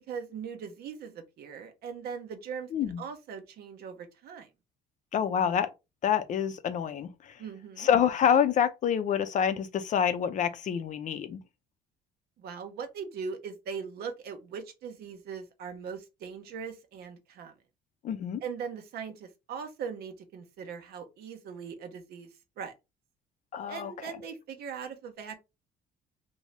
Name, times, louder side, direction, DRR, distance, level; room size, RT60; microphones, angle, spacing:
voice 1, 0.1-4.5 7.4-7.9 12.4-17.5 18.4-22.3 22.6-22.7 23.7-25.4, right 6 dB, 65° right, 0.8 m, -40 dB
voice 2, 5.1-5.7 6.0-7.1 7.8-11.4 18.0-18.4 23.5-23.9, left 8 dB, 45° left, 0.5 m, -27 dB
2.7 x 2.7 x 3.2 m
cardioid pair, 110°, 17 cm